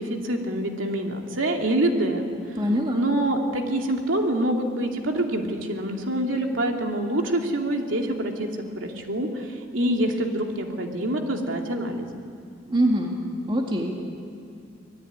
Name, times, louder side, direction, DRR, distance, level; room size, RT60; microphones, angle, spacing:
voice 1, 0.0-2.3 2.9-8.5 8.7-12.2, right 1 dB, 75° right, 2 dB, 2.8 m, -26 dB
voice 2, 2.6-3.0 12.7-13.1 13.5-14.1, equal, 25° right, 0 dB, 2.1 m, -24 dB
25.0 x 19.0 x 9.5 m, 2.4 s
head